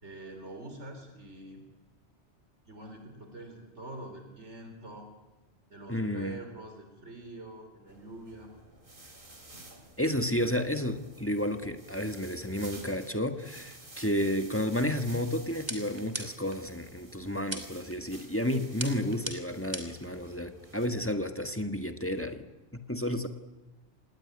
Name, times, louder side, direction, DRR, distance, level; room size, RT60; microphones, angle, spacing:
voice 1, 0.0-1.7 2.7-5.1 5.7-8.5, right 2 dB, 75° right, 5 dB, 4.2 m, -45 dB
voice 2, 5.9-6.4 10.0-22.4 22.7-23.3, left 1 dB, 10° left, 8 dB, 1.4 m, -31 dB
sound 1, 7.9-20.9, right 2 dB, 45° right, 3.4 m, -52 dB
sound 2, 15.7-16.6 17.5-18.0 18.8-20.1, right 1 dB, 20° right, 3.0 m, -38 dB
27.5 x 19.5 x 9.7 m, 1.1 s
omnidirectional pair, 1.2 m